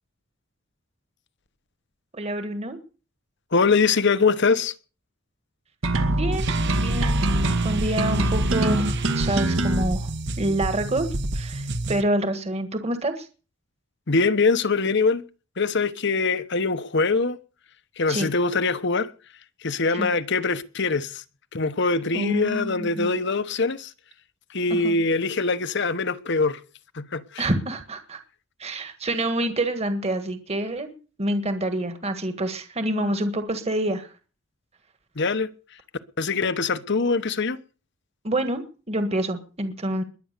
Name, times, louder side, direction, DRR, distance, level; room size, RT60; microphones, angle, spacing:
voice 1, 2.1-2.8 6.1-10.1 10.4-11.1 11.3-13.3 18.1-18.3 19.9-20.1 22.1-23.1 24.7-25.0 27.4-28.2 28.6-30.9 31.2-34.1 38.2-40.0, right 1 dB, 30° right, 1.6 m, -27 dB
voice 2, 3.5-4.7 14.1-15.2 15.6-17.4 18.0-19.1 19.6-21.2 21.5-23.9 24.5-26.6 26.9-27.5 35.2-35.5 36.2-37.6, left 4 dB, 60° left, 1.1 m, -23 dB
sound 1, 5.8-9.8, right 1 dB, 80° right, 2.2 m, -24 dB
sound 2, 6.3-12.0, right 2 dB, 60° right, 1.3 m, -29 dB
21.5 x 9.4 x 6.8 m
head